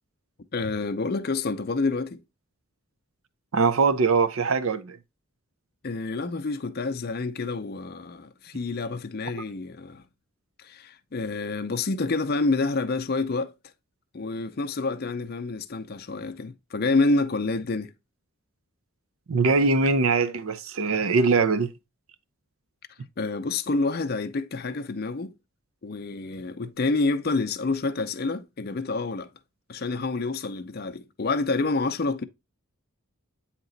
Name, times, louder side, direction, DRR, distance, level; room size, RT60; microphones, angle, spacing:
voice 1, 0.5-2.2 5.8-10.0 10.6-13.5 14.1-17.9 23.2-25.3 25.8-29.3 29.7-32.2, left 3 dB, 45° left, 0.5 m, -28 dB
voice 2, 3.5-5.0 19.3-21.7, right 4 dB, 65° right, 0.5 m, -22 dB
8.8 x 2.9 x 3.9 m
head